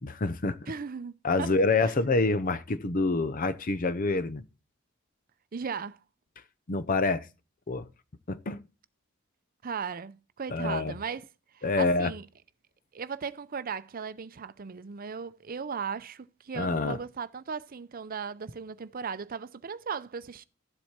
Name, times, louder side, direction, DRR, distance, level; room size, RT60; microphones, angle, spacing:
voice 1, 0.0-0.6 1.2-4.4 6.7-7.3 7.7-7.9 8.3-8.6 10.5-10.9 11.6-12.1 16.6-17.0, left 3 dB, 45° left, 0.7 m, -27 dB
voice 2, 0.7-1.5 1.8-1.9 5.5-6.0 9.6-11.3 11.5-12.3 12.9-20.4, right 6 dB, 45° right, 0.6 m, -37 dB
13.0 x 7.6 x 4.3 m
head